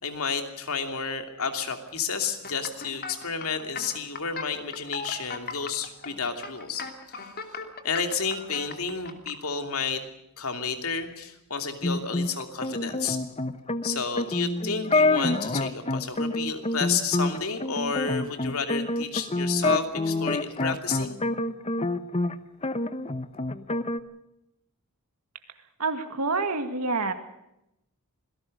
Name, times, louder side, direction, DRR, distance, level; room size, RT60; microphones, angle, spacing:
voice 1, 0.0-10.0 10.4-13.2 13.8-21.2, left 5 dB, 70° left, 6 dB, 2.8 m, -31 dB
sound 1, 2.2-9.3, left 5 dB, 45° left, 2.8 m, -38 dB
sound 2, 11.8-22.3 22.6-24.0, left 2 dB, 30° left, 0.9 m, -27 dB
voice 2, 25.8-27.1, right 3 dB, 85° right, 7 dB, 2.1 m, -27 dB
26.5 x 18.0 x 6.6 m, 0.85 s
head